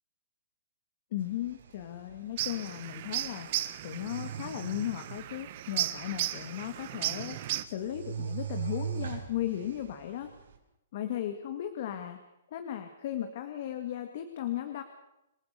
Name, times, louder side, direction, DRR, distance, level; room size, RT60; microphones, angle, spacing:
voice 1, 1.1-10.3 10.9-12.2 12.5-14.8, left 11 dB, 45° left, 7 dB, 2.0 m, -36 dB
sound 1, 1.2-10.6, right 8 dB, 90° right, 5.6 m, -42 dB
sound 2, 2.4-7.6, right 14 dB, 40° right, 1.3 m, -35 dB
27.5 x 17.5 x 6.8 m, 0.89 s
hypercardioid pair, 165°, 0 cm